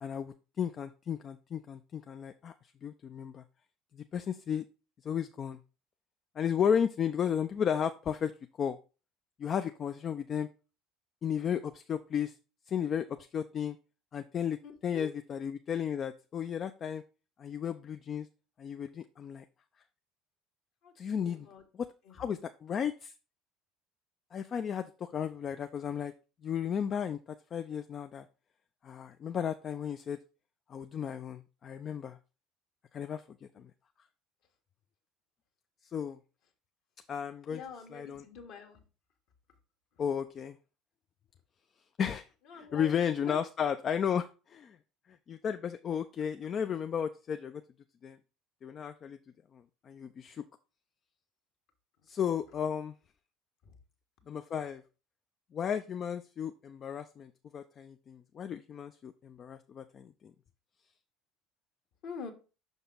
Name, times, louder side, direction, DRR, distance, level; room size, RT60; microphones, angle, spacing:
voice 1, 0.0-3.4 3.9-4.6 5.0-5.6 6.4-8.3 8.6-8.8 9.4-10.5 11.2-12.3 12.7-13.1 13.3-13.8 14.1-17.0 17.4-18.3 18.6-19.4 21.0-21.5 21.7-23.1 24.3-26.1 26.4-27.2 27.5-28.3 28.8-30.2 30.7-32.2 32.9-33.7 35.9-36.2 37.1-37.6 37.9-38.2 40.0-40.6 42.0-42.3 42.5-44.8 45.1-47.6 48.0-48.2 48.6-49.2 49.5-50.4 52.1-52.9 54.3-54.8 55.5-60.1, left 8 dB, 40° left, 9 dB, 0.4 m, -34 dB
voice 2, 14.6-15.1 20.8-21.6 22.1-22.2 37.5-38.8 42.5-42.9 43.3-43.4 53.6-53.8 62.0-62.3, left 6 dB, 55° left, 3 dB, 1.4 m, -45 dB
6.0 x 5.3 x 3.8 m, 0.33 s
figure-of-eight pair, 65°, 0 cm